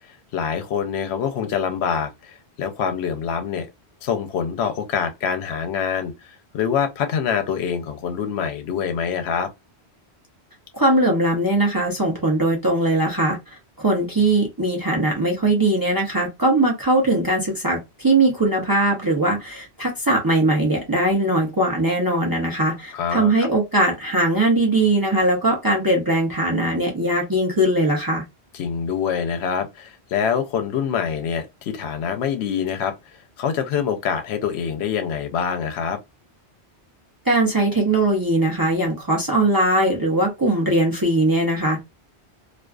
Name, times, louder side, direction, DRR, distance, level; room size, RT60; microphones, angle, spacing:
voice 1, 0.3-3.7 4.0-9.5 22.9-23.5 28.5-32.9 33.4-36.0, left 7 dB, 75° left, 0.8 m, -25 dB
voice 2, 10.7-13.4 13.8-28.2 37.3-41.8, right 1 dB, 25° right, 0.5 m, -20 dB
2.4 x 2.3 x 2.3 m
omnidirectional pair, 1.1 m